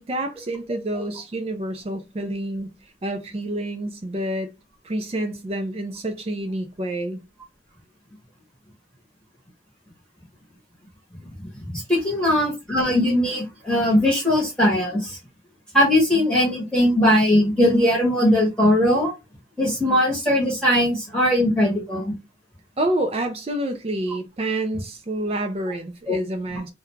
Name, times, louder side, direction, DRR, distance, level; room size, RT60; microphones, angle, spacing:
voice 1, 0.0-2.7 3.0-4.5 4.8-7.2 22.8-26.7, right 1 dB, 30° right, 0.4 m, -28 dB
voice 2, 11.7-15.2 15.7-19.1 19.6-22.1 26.1-26.2, left 1 dB, 5° left, 0.9 m, -20 dB
2.3 x 2.2 x 3.0 m
head